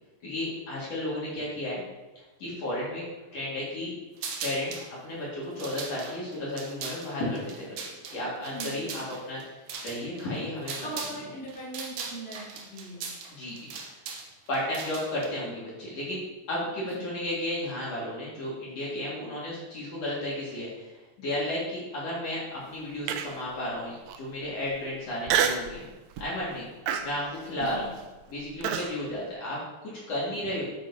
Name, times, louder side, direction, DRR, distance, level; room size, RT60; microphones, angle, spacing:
voice 1, 0.2-1.8 2.4-3.0 3.3-3.9 4.4-7.7 8.1-10.9 13.3-13.7 14.5-16.2 16.5-20.9 21.2-25.8 26.2-26.7 27.0-27.9 28.3-30.6, left 1 dB, 50° left, -7 dB, 2.9 m, -33 dB
sound 1, 4.2-4.9 5.4-11.2 11.5-15.3, right 5 dB, 70° right, 2.3 m, -39 dB
voice 2, 8.4-9.1 10.8-12.4 12.7-13.0 16.8-17.1 27.6-27.9, right 1 dB, 5° left, -8 dB, 2.4 m, -40 dB
Human voice, 23.1-23.5 24.1-24.2 25.3-25.7 26.2-26.4 26.9-28.9, right 8 dB, 85° right, 1.7 m, -28 dB
9.1 x 8.6 x 2.8 m, 1.2 s
omnidirectional pair, 3.9 m